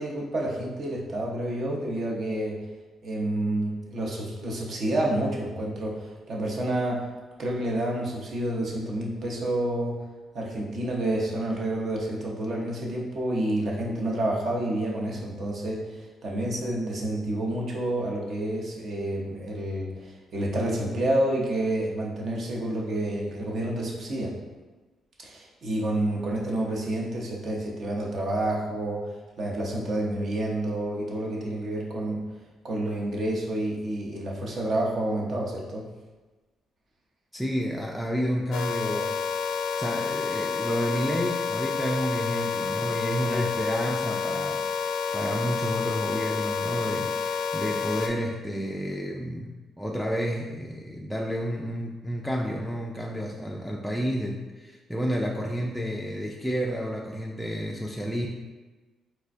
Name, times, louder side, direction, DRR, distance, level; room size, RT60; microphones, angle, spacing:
voice 1, 0.0-2.6 3.0-7.1 7.4-10.0 10.3-24.3 25.2-32.2 32.6-35.9 43.3-43.4, right 1 dB, 55° right, -2 dB, 0.7 m, -29 dB
voice 2, 37.3-39.2 39.8-49.5 49.8-58.3, equal, ahead, -2 dB, 0.3 m, -30 dB
sound 1, 38.5-48.1, left 5 dB, 85° left, 0.3 m, -29 dB
4.2 x 2.2 x 2.5 m, 1.2 s
cardioid pair, 90°, 0 cm